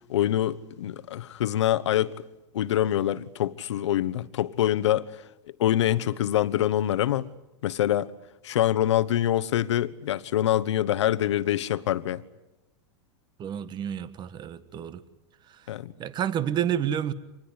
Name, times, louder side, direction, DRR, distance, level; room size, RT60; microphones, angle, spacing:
voice 1, 0.1-2.2 2.5-5.2 5.6-7.3 7.6-8.1 8.4-12.2 15.7-15.9, left 12 dB, 90° left, 1.1 m, -25 dB
voice 2, 13.4-15.0 16.0-17.1, right 9 dB, 30° right, 1.5 m, -29 dB
26.0 x 20.5 x 9.8 m
supercardioid pair, 130°, 15 cm